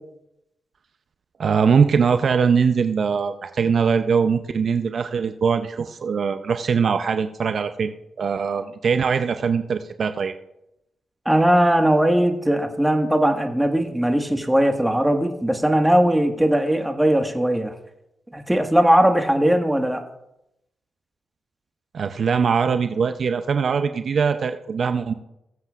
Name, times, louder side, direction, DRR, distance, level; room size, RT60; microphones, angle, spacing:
voice 1, 1.4-10.3 21.9-25.1, right 6 dB, 60° right, 9 dB, 0.5 m, -21 dB
voice 2, 11.2-17.7 18.3-20.0, right 1 dB, 10° right, 5 dB, 1.6 m, -19 dB
21.0 x 7.6 x 2.4 m, 0.84 s
supercardioid pair, 45°, 0 cm